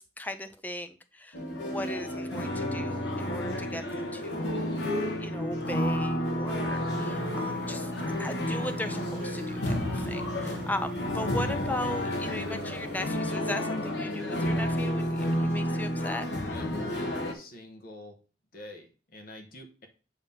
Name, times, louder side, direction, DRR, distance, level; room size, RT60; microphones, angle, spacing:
voice 1, 0.0-4.8 5.2-7.9 8.2-16.3, left 1 dB, 10° left, 9 dB, 0.5 m, -38 dB
sound 1, 1.3-17.3, left 1 dB, 75° left, 1.2 m, -31 dB
sound 2, 6.9-13.0, equal, 65° right, 0.7 m, -39 dB
voice 2, 16.5-18.1 18.5-19.9, left 1 dB, 50° left, 3 dB, 1.1 m, -47 dB
7.5 x 2.9 x 5.3 m, 0.37 s
head